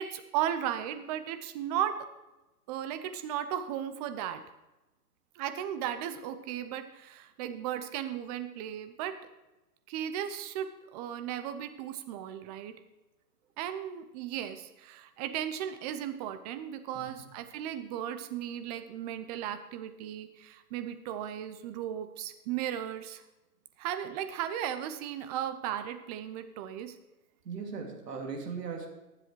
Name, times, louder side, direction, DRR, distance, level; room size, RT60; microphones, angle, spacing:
voice 1, 0.0-2.0 2.7-4.4 5.3-9.2 9.9-12.7 13.6-23.2 23.8-27.0, right 10 dB, 25° right, 9 dB, 0.6 m, -36 dB
voice 2, 27.4-28.9, right 5 dB, 75° right, 1 dB, 2.6 m, -38 dB
20.0 x 7.7 x 3.2 m, 1.0 s
hypercardioid pair, 120°, 49 cm